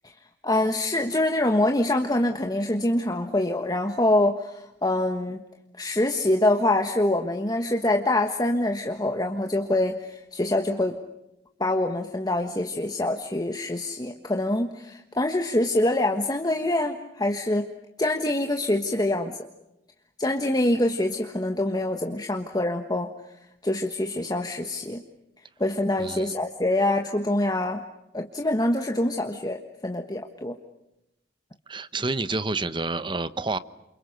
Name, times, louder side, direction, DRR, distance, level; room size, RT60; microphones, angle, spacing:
voice 1, 0.4-5.4 5.8-11.0 11.6-17.7 18.0-19.4 20.2-23.1 23.6-25.0 25.6-27.8 28.1-30.5, left 1 dB, 20° left, 4 dB, 1.4 m, -25 dB
voice 2, 26.0-26.3 31.7-33.6, right 3 dB, 25° right, 14 dB, 1.0 m, -29 dB
29.5 x 28.0 x 6.7 m, 0.89 s
head